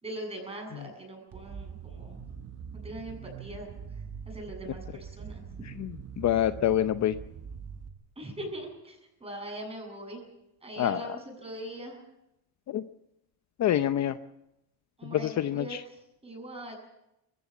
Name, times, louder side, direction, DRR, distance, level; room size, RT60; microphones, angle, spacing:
voice 1, 0.0-2.2 2.7-3.7 4.3-5.4 8.2-10.2 10.6-12.0 15.0-15.8 16.2-16.8, right 1 dB, 15° right, 2 dB, 7.7 m, -41 dB
sound 1, 1.3-7.9, right 6 dB, 40° right, 1.6 m, -43 dB
voice 2, 5.8-7.1 10.8-11.0 12.7-12.8 13.6-14.2 15.0-15.8, left 11 dB, 45° left, 11 dB, 0.7 m, -26 dB
22.0 x 15.5 x 8.5 m, 0.87 s
cardioid pair, 130°, 40 cm